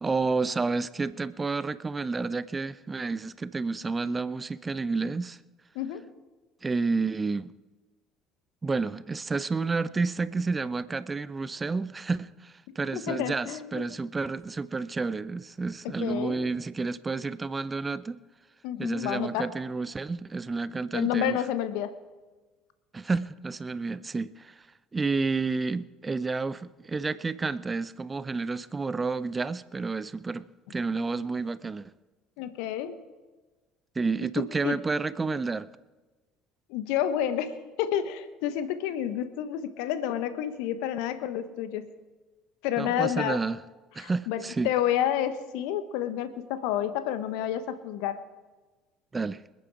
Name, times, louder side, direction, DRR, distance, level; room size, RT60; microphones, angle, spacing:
voice 1, 0.0-5.4 6.6-7.5 8.6-18.2 18.8-21.4 22.9-24.7 24.9-31.9 34.0-35.7 42.8-43.6 43.9-44.7 49.1-49.4, right 4 dB, 25° right, 0.6 m, -30 dB
voice 2, 5.7-6.1 12.9-13.8 15.8-16.5 18.6-19.5 20.9-21.9 32.4-33.0 34.4-34.8 36.7-41.9 42.6-43.4 44.0-48.2, left 10 dB, 65° left, 1.2 m, -30 dB
26.5 x 9.3 x 4.8 m
figure-of-eight pair, 60°, 0 cm